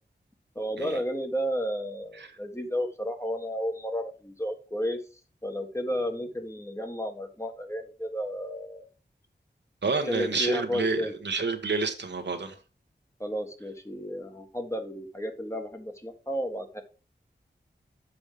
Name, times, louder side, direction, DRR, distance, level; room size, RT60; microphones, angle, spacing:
voice 1, 0.5-5.0 5.4-8.8 10.0-11.2 13.2-16.8, equal, 15° left, 1.4 m, -32 dB
voice 2, 9.8-12.6, right 4 dB, 70° right, 1.2 m, -29 dB
7.2 x 5.3 x 4.9 m
wide cardioid pair, 80°, 18 cm